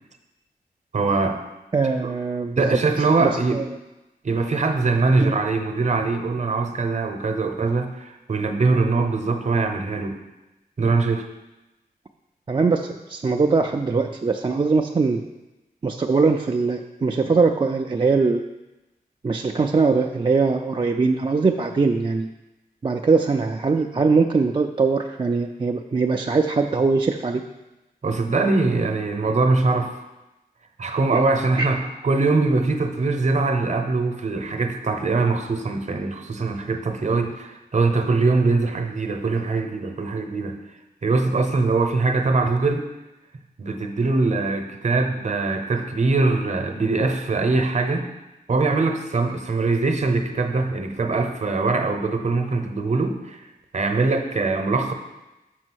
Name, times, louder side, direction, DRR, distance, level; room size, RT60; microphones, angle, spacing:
voice 1, 0.9-1.4 2.6-3.6 4.2-10.2 10.8-11.3 28.0-29.9 30.8-40.6 41.0-42.9 43.6-48.1 48.5-53.4 53.7-54.9, right 3 dB, 50° right, 5 dB, 0.8 m, -22 dB
voice 2, 1.7-2.8 3.2-3.6 5.2-5.3 12.5-15.2 15.8-18.4 19.2-22.3 22.8-27.4 31.1-31.2 31.6-31.7, right 4 dB, 30° right, 3 dB, 0.4 m, -21 dB
6.2 x 5.1 x 6.2 m, 1.0 s
wide cardioid pair, 105°, 16 cm